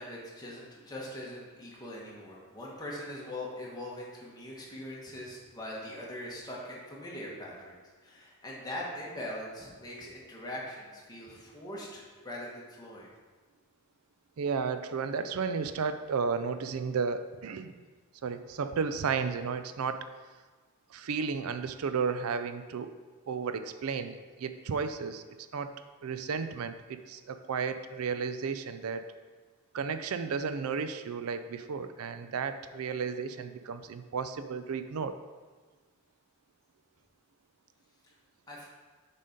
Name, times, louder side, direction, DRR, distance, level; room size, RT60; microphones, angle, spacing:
voice 1, 0.0-13.1 38.5-38.7, left 1 dB, 20° left, -4 dB, 1.4 m, -42 dB
voice 2, 14.4-17.8 18.2-20.0 20.9-22.9 23.3-25.2 25.5-25.7 26.0-29.1 29.7-35.1, right 5 dB, 85° right, 10 dB, 0.4 m, -33 dB
7.3 x 4.2 x 5.1 m, 1.4 s
head